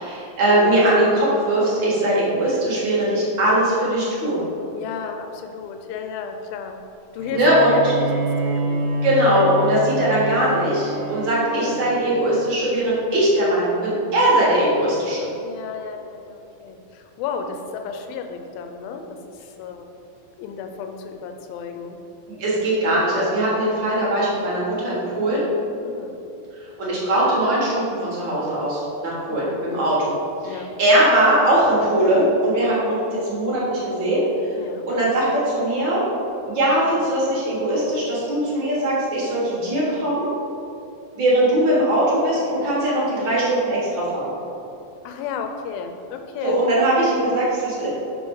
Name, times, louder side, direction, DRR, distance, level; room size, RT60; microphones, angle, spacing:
voice 1, 0.0-4.4 7.3-7.9 9.0-15.2 22.4-25.5 26.8-30.2 30.4-34.5 34.9-36.0 36.5-40.3 41.2-44.3 46.4-47.9, right 1 dB, 50° right, -7 dB, 1.5 m, -20 dB
voice 2, 4.7-6.8 7.1-9.2 11.5-11.8 15.4-19.9 20.4-22.0 23.6-23.8 25.8-26.2 29.3-29.9 30.4-30.7 34.6-34.9 45.0-46.6 47.1-47.5, left 6 dB, 85° left, 5 dB, 2.4 m, -33 dB
Bowed string instrument, 7.2-12.7, right 1 dB, 85° right, 2.6 m, -28 dB
6.3 x 5.1 x 4.7 m, 2.8 s
omnidirectional pair, 4.2 m